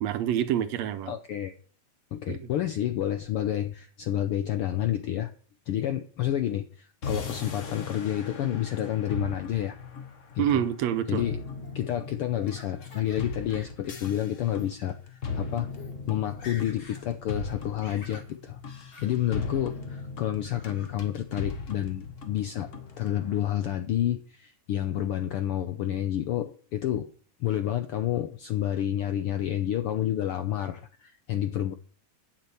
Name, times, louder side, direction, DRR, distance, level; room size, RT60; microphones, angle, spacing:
voice 1, 0.0-1.1 2.3-2.5 10.4-11.3, right 11 dB, 75° right, 1.9 m, -27 dB
voice 2, 1.1-1.5 2.1-5.3 5.7-9.8 10.3-10.6 11.1-11.4 11.7-15.7 16.1-18.6 19.0-22.7 23.0-27.1 27.4-31.7, left 11 dB, 75° left, 1.3 m, -29 dB
sound 1, 7.0-23.4, left 4 dB, 45° left, 1.0 m, -38 dB
Laughter, 11.6-13.2 13.5-14.2 14.5-14.7 15.4-15.5 15.7-16.0 16.2-17.0 17.4-18.3 18.9-19.1 19.5-20.0 20.4-20.9, left 3 dB, 60° left, 3.8 m, -49 dB
9.1 x 7.6 x 6.9 m
omnidirectional pair, 3.3 m